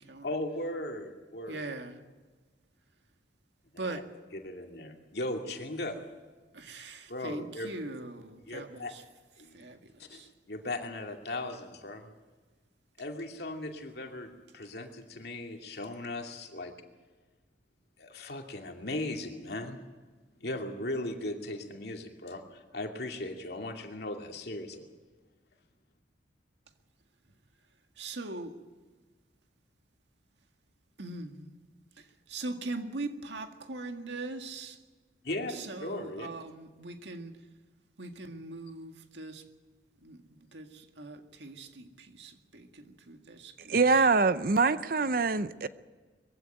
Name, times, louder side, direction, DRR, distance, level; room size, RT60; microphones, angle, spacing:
voice 1, 0.2-1.6 3.7-4.0 4.3-6.0 7.1-7.7 8.5-8.9 9.4-9.7 10.1-12.1 13.0-16.7 18.0-19.8 20.4-24.9 35.2-36.3, left 1 dB, 60° left, 2.5 m, -38 dB
voice 2, 1.5-2.0 3.8-4.1 6.5-9.0 9.4-10.3 28.0-28.6 31.0-31.6 32.0-34.8 35.5-37.4 38.0-39.4 40.0-44.1, right 2 dB, 70° right, 2.0 m, -41 dB
voice 3, 43.7-45.7, right 4 dB, 50° right, 0.6 m, -24 dB
22.0 x 16.0 x 9.2 m
head